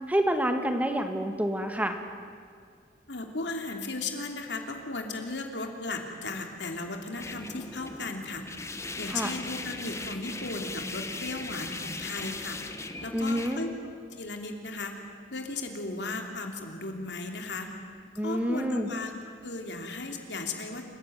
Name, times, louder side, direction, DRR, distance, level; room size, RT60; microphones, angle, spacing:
voice 1, 0.1-2.0 9.1-9.3 13.1-13.6 18.2-18.9, equal, 10° right, 5 dB, 1.5 m, -28 dB
voice 2, 3.1-8.4 9.0-12.6 13.0-15.0 15.3-17.7 18.2-19.1 19.4-20.9, left 3 dB, 70° left, 3 dB, 3.1 m, -36 dB
sound 1, 7.2-13.6, left 3 dB, 15° left, 1.2 m, -39 dB
28.0 x 16.0 x 9.4 m, 2.1 s
head